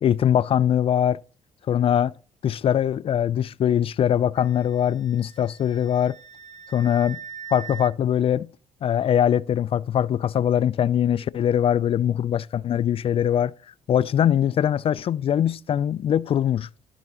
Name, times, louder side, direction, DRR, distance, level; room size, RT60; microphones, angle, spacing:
voice 1, 0.0-1.2 1.7-2.1 2.4-6.2 6.7-7.2 7.5-8.5 8.8-13.5 13.9-16.7, left 9 dB, 45° left, 0.3 m, -22 dB
Wind instrument woodwind instrument, 4.4-7.9, right 6 dB, 80° right, 3.4 m, -42 dB
13.5 x 4.9 x 2.9 m
supercardioid pair, 60°, 13 cm